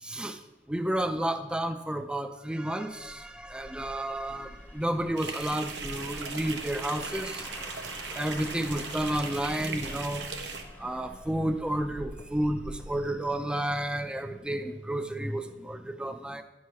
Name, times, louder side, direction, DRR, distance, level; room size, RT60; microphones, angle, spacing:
voice 1, 0.0-0.4 0.7-7.4 8.1-10.2 10.8-16.4, right 1 dB, 5° right, 8 dB, 0.4 m, -31 dB
sound 1, 2.9-14.0 14.4-14.6, left 1 dB, 10° left, 0.8 m, -46 dB
sound 2, 5.2-10.6, right 4 dB, 90° right, 1.0 m, -38 dB
11.0 x 4.7 x 5.7 m, 1.0 s
head